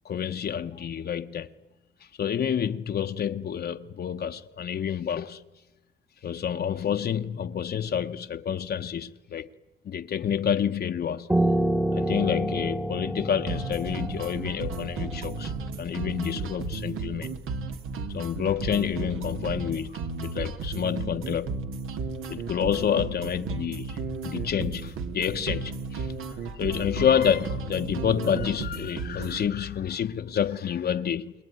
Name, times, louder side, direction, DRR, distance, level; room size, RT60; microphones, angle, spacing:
voice 1, 0.0-1.5 2.2-5.4 6.2-9.5 9.9-11.4 11.9-15.5 15.8-17.4 18.1-21.6 22.3-26.1 26.5-31.3, left 8 dB, 50° left, 0.9 m, -28 dB
Piano, 11.3-16.6, right 1 dB, 5° right, 1.1 m, -29 dB
sound 1, 13.5-29.5, right 4 dB, 85° right, 2.0 m, -34 dB
28.5 x 21.5 x 9.5 m
cardioid pair, 115°, 21 cm